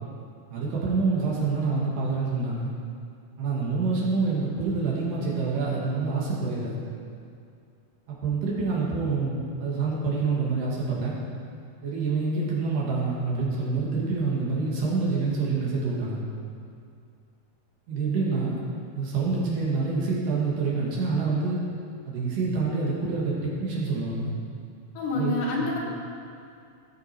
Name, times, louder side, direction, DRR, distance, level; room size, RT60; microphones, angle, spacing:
voice 1, 0.5-2.7 3.4-6.8 8.1-11.2 11.8-16.2 17.9-18.6 18.9-21.6 22.0-24.3 25.1-25.7, right 4 dB, 75° right, -5 dB, 3.2 m, -27 dB
voice 2, 24.9-25.8, left 2 dB, 75° left, -3 dB, 3.1 m, -27 dB
16.5 x 5.9 x 4.7 m, 2.4 s
omnidirectional pair, 3.9 m